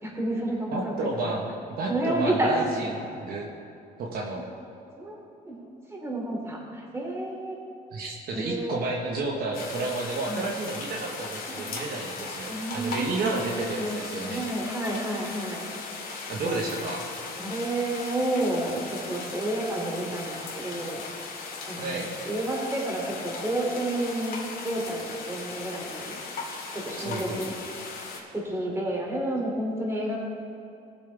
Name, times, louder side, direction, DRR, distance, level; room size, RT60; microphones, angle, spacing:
voice 1, 0.0-1.3 1.9-2.5 4.9-5.2 5.4-5.6 5.9-7.6 8.3-8.8 10.3-10.5 11.5-11.6 12.5-14.0 14.3-15.6 16.4-16.6 17.4-21.0 21.7-26.2 26.8-27.5 28.3-30.2, right 1 dB, 15° right, -2 dB, 2.9 m, -30 dB
voice 2, 0.7-3.5 4.0-4.4 7.9-14.4 16.3-17.0 21.8-22.1 27.0-27.5, right 2 dB, 60° right, 0 dB, 1.4 m, -31 dB
sound 1, 9.5-28.2, left 4 dB, 60° left, 2.4 m, -38 dB
18.5 x 7.9 x 3.5 m, 2.6 s
cardioid pair, 110°, 17 cm